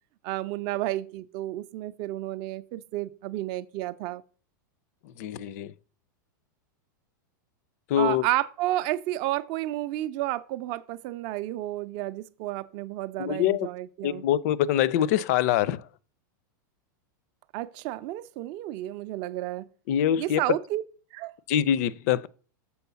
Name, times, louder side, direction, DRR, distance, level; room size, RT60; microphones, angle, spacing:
voice 1, 0.2-4.2 8.0-14.2 17.5-19.7 20.2-20.8 21.1-21.3, right 15 dB, 40° right, 0.5 m, -31 dB
voice 2, 5.0-5.7 7.9-8.3 13.2-13.7 14.0-15.9 19.9-20.6 21.5-22.3, left 10 dB, 50° left, 0.5 m, -24 dB
7.0 x 4.5 x 6.8 m
supercardioid pair, 155°, 11 cm